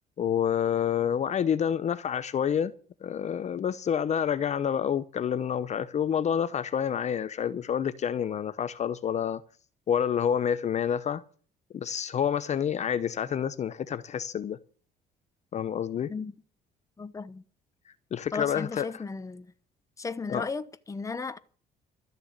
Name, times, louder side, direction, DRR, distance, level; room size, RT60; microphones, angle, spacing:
voice 1, 0.2-2.7 3.0-9.4 9.9-11.2 11.7-14.6 15.5-16.1 17.9-19.0 20.3-20.5, left 8 dB, 40° left, 0.8 m, -28 dB
voice 2, 17.0-17.4 18.3-19.5 20.0-21.4, left 4 dB, 20° left, 1.0 m, -35 dB
13.0 x 6.9 x 9.5 m
cardioid pair, 110°, 17 cm